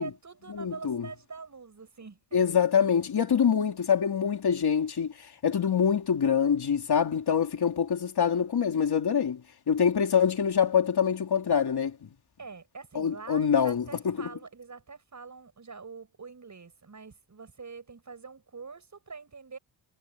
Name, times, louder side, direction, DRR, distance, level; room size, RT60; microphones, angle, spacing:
voice 1, 0.0-2.2 12.4-19.6, right 4 dB, 35° right, 7.8 m, -45 dB
voice 2, 0.5-1.1 2.3-9.4 9.7-12.0 13.0-14.3, left 7 dB, 50° left, 3.5 m, -25 dB
wide cardioid pair, 140°, 48 cm